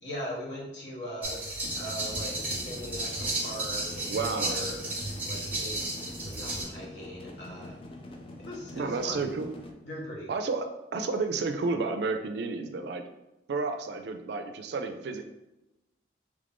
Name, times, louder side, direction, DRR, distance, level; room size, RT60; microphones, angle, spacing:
voice 1, 0.0-1.4 1.8-4.8 5.2-7.7 8.4-9.3 9.8-10.3, equal, 70° left, -4 dB, 1.1 m, -40 dB
sound 1, 1.2-6.6, right 2 dB, 10° right, 0.7 m, -33 dB
sound 2, 1.6-9.7, left 2 dB, 30° left, 0.3 m, -45 dB
voice 2, 4.1-4.7 8.7-9.5 10.3-13.0 13.5-15.2, right 4 dB, 65° right, 7 dB, 0.3 m, -31 dB
3.1 x 2.5 x 3.5 m, 0.95 s
head